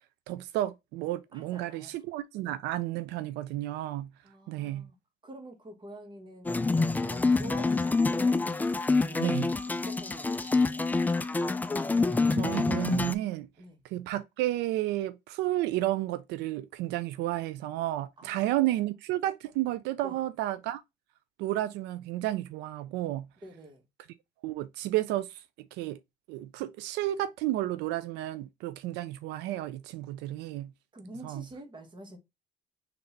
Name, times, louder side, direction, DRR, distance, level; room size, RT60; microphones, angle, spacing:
voice 1, 0.3-4.1 4.5-4.9 9.2-9.5 12.3-13.5 13.9-20.8 21.4-23.3 24.4-25.4 25.7-26.0 26.3-30.7 31.2-31.4, right 15 dB, 90° right, 0.4 m, -32 dB
voice 2, 1.3-2.0 4.2-5.0 5.2-8.5 8.8-9.4 9.7-10.9 13.6-13.8 18.2-18.9 20.0-20.2 23.4-23.8 30.9-32.2, right 1 dB, 25° right, 1.4 m, -48 dB
sound 1, 6.5-13.1, left 3 dB, 10° left, 0.3 m, -27 dB
3.9 x 3.3 x 4.0 m
cardioid pair, 110°, 17 cm